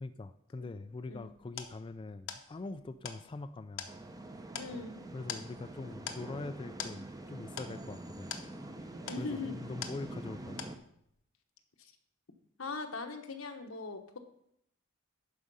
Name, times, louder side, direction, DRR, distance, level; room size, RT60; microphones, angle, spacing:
voice 1, 0.0-3.9 5.1-8.3 8.8-10.6, left 3 dB, 25° left, 9 dB, 0.3 m, -43 dB
sound 1, 0.9-10.3 10.6-11.2, left 7 dB, 65° left, 0.9 m, -45 dB
sound 2, 3.9-10.8, right 1 dB, 20° right, 0.6 m, -46 dB
voice 2, 4.5-5.0 9.0-9.6 12.6-14.2, left 3 dB, 80° left, 5 dB, 1.1 m, -40 dB
11.5 x 4.9 x 5.5 m, 0.74 s
head